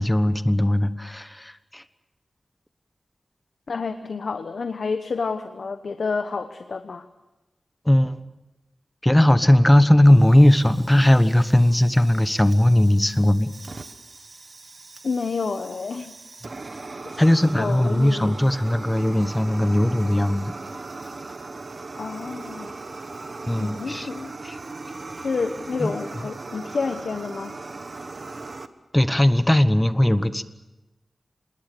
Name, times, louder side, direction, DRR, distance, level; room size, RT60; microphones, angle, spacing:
voice 1, 0.0-1.8 7.8-8.1 9.0-13.5 17.2-20.5 23.5-24.1 24.4-24.6 25.8-25.9 28.9-30.4, left 1 dB, 10° left, 12 dB, 1.1 m, -18 dB
voice 2, 3.7-7.1 15.0-16.2 17.0-17.3 17.5-18.4 22.0-22.7 23.6-24.3 25.1-27.6, left 4 dB, 75° left, 8 dB, 1.1 m, -29 dB
Fire, 10.0-28.7, right 3 dB, 50° right, 1.3 m, -39 dB
26.5 x 21.0 x 6.8 m, 1.0 s
wide cardioid pair, 105°, 0 cm